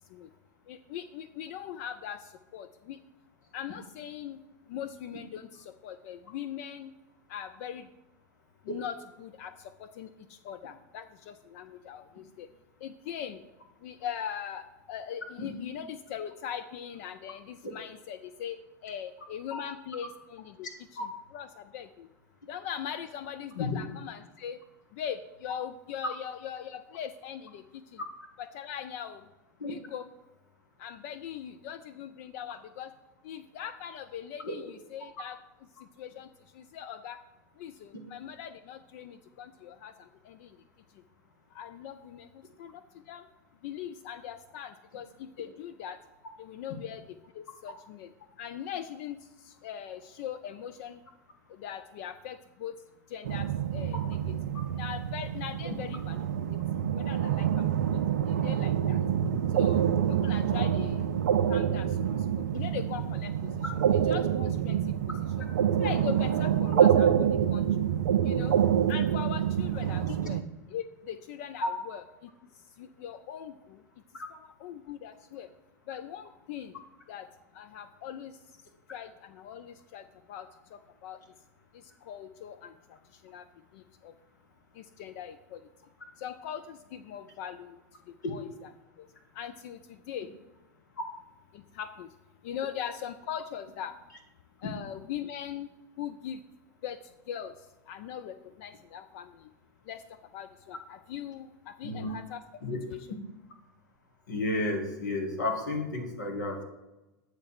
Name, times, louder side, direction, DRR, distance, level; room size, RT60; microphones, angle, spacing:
voice 1, 0.7-3.0 3.5-4.4 4.7-6.9 7.3-7.9 8.6-12.5 12.8-13.4 13.8-22.1 22.5-24.6 24.9-28.0 28.4-29.3 29.6-30.1 30.8-32.9 33.2-35.4 35.8-37.2 37.6-40.6 40.9-41.0 41.5-43.3 43.6-46.0 46.4-48.1 48.4-51.0 51.5-52.8 53.1-54.3 54.7-56.6 56.9-59.0 59.5-61.1 61.5-65.5 65.7-67.7 68.2-68.6 68.9-70.4 70.7-72.3 72.8-73.8 74.3-75.5 75.9-77.3 77.5-78.4 78.9-81.2 81.7-83.5 83.7-84.1 84.7-85.6 86.2-88.7 89.0-89.1 89.3-90.3 91.5-92.2 92.4-94.0 94.6-95.7 96.0-96.4 96.8-99.5 99.8-102.4 102.9-103.2, left 9 dB, 55° left, 10 dB, 0.4 m, -41 dB
sound 1, 53.2-70.4, right 9 dB, 70° right, 0.4 m, -27 dB
voice 2, 101.8-102.1 102.6-102.8 104.3-106.6, left 2 dB, 75° left, 3 dB, 1.3 m, -32 dB
8.3 x 3.2 x 6.5 m, 1.0 s
figure-of-eight pair, 85°, 10 cm